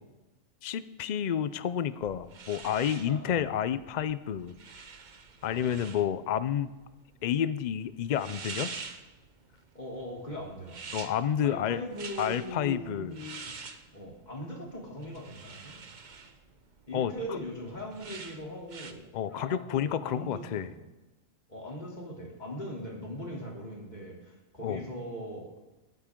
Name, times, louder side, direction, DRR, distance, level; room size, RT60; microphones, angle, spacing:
voice 1, 0.6-4.5 5.4-6.7 7.2-8.7 10.9-11.8 12.2-13.2 16.9-17.4 19.1-20.7 24.6-24.8, left 9 dB, 90° left, 14 dB, 0.3 m, -30 dB
sound 1, 2.0-18.9, right 5 dB, 40° right, 0.9 m, -46 dB
voice 2, 3.1-3.4 5.5-5.8 9.7-10.8 11.4-13.5 13.9-15.8 16.9-20.8 21.5-25.5, equal, 35° left, -2 dB, 3.1 m, -40 dB
19.0 x 9.6 x 3.7 m, 1.1 s
omnidirectional pair, 1.4 m